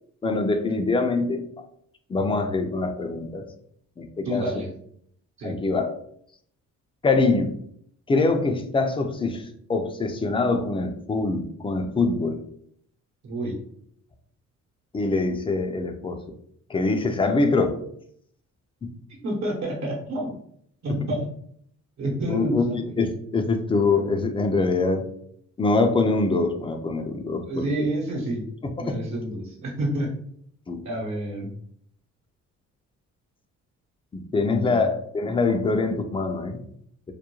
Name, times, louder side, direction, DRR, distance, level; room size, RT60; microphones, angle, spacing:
voice 1, 0.2-1.6 2.1-3.4 4.0-4.7 5.4-5.9 7.0-7.5 8.1-9.4 9.7-12.4 14.9-16.2 16.7-17.7 18.8-18.9 22.3-25.0 25.6-27.9 28.8-29.0 30.7-30.8 34.1-36.6, left 3 dB, 20° left, 6 dB, 0.3 m, -24 dB
voice 2, 4.2-4.7 5.4-5.5 13.2-13.6 19.2-20.4 20.8-21.3 22.0-22.9 27.5-28.5 28.8-30.2 30.8-31.5 34.4-34.9, right 1 dB, 65° right, -2 dB, 0.9 m, -29 dB
2.3 x 2.1 x 2.9 m, 0.66 s
cardioid pair, 90°, 30 cm